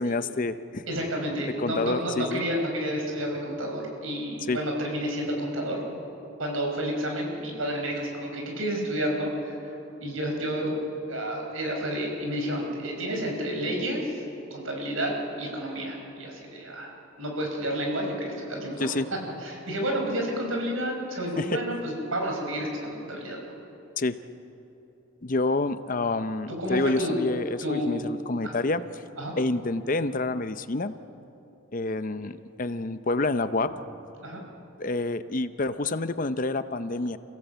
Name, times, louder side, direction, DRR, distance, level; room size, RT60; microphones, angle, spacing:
voice 1, 0.0-0.8 1.6-2.4 4.5-4.6 18.8-19.1 21.4-21.6 24.0-24.2 25.2-28.8 29.4-30.9 31.7-33.7 34.8-37.2, left 2 dB, 40° left, 12 dB, 0.6 m, -28 dB
voice 2, 0.9-5.8 6.4-9.5 10.0-10.7 11.1-14.2 14.5-18.9 19.4-23.4 26.6-27.2 27.6-28.1 28.4-28.6 29.2-29.3 34.2-34.4, equal, 70° right, 1 dB, 4.9 m, -30 dB
28.0 x 16.5 x 8.1 m, 3.0 s
head